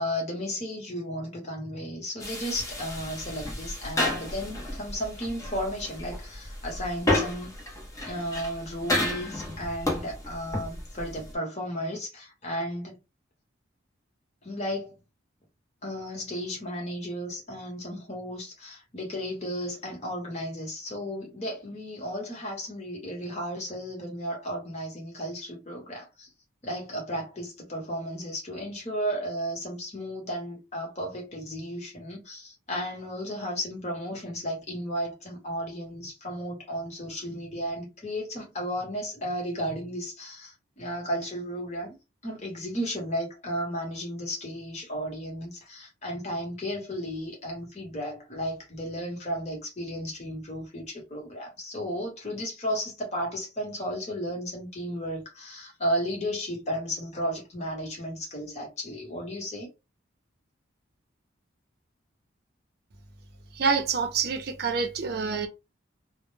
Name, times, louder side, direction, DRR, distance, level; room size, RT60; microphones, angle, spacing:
voice 1, 0.0-7.5 8.0-13.0 14.4-15.0 15.8-26.3 26.6-42.0 42.2-59.7, equal, 35° left, 0.9 m, -34 dB
sound 1, 2.2-11.4, left 1 dB, 15° left, 0.6 m, -32 dB
voice 2, 63.6-65.5, right 5 dB, 50° right, 0.5 m, -27 dB
2.1 x 2.0 x 3.1 m
head